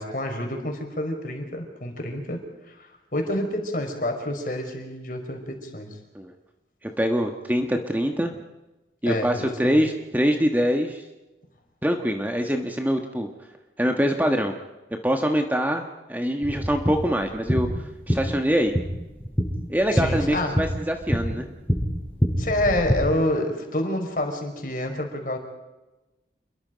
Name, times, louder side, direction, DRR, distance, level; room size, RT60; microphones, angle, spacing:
voice 1, 0.0-6.0 9.0-9.8 19.9-20.6 22.4-25.4, left 1 dB, 50° left, 3 dB, 4.9 m, -28 dB
voice 2, 6.8-8.3 9.0-11.0 11.8-13.3 13.8-14.6 15.0-18.7 19.7-21.5, equal, 10° right, 4 dB, 1.4 m, -24 dB
sound 1, 16.4-23.0, equal, 10° left, 7.0 m, -27 dB
28.5 x 22.0 x 5.2 m, 1.1 s
head